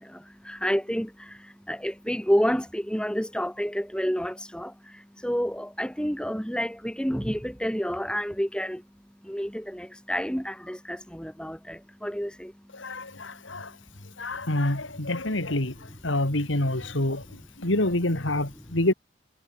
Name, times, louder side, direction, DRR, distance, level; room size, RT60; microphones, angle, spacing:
voice 1, 0.0-8.8 9.2-15.2 15.5-16.0 16.3-17.5 18.1-18.8, equal, 5° left, 7.1 m, -31 dB
voice 2, 12.8-13.7 14.2-15.7 16.0-17.2 17.6-18.9, left 1 dB, 75° left, 3.1 m, -26 dB
head